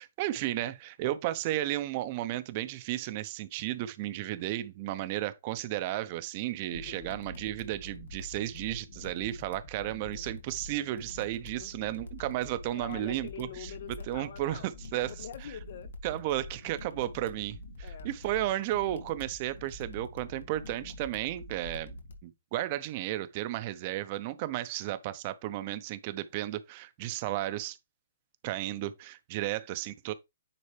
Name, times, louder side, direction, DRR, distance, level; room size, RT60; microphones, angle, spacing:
voice 1, 0.0-13.7 14.1-15.1 16.0-21.9 22.2-27.8 28.4-30.1, right 14 dB, 35° right, 0.9 m, -33 dB
sound 1, 6.7-22.2, left 2 dB, 70° left, 2.0 m, -46 dB
voice 2, 6.7-7.1 9.9-10.2 11.6-12.0 12.7-15.9 17.8-18.1, left 9 dB, 50° left, 1.0 m, -46 dB
9.8 x 4.2 x 3.4 m
hypercardioid pair, 155°, 0 cm